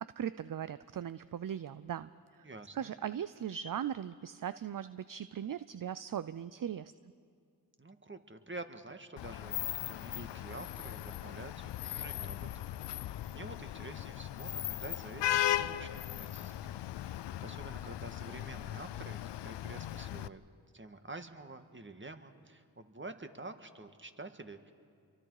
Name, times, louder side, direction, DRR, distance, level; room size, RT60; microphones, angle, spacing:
voice 1, 0.0-2.5 2.7-6.9, right 9 dB, 55° right, 15 dB, 0.6 m, -39 dB
voice 2, 2.4-2.9 7.8-9.6 9.9-20.4 20.7-24.7, right 2 dB, 30° right, 8 dB, 1.8 m, -48 dB
Vehicle horn car horn honking / Traffic noise roadway noise, 9.2-20.3, left 12 dB, 90° left, 0.5 m, -38 dB
28.0 x 23.5 x 4.9 m, 2.3 s
cardioid pair, 40°, 41 cm